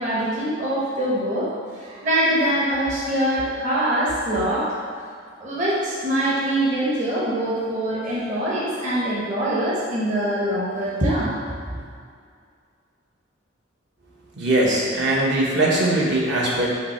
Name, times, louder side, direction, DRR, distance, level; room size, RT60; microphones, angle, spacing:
voice 1, 0.0-5.1 5.4-11.8, right 1 dB, 40° right, -7 dB, 1.0 m, -24 dB
voice 2, 14.4-16.7, right 1 dB, 60° right, -5 dB, 1.2 m, -20 dB
5.9 x 3.2 x 5.5 m, 2.2 s
head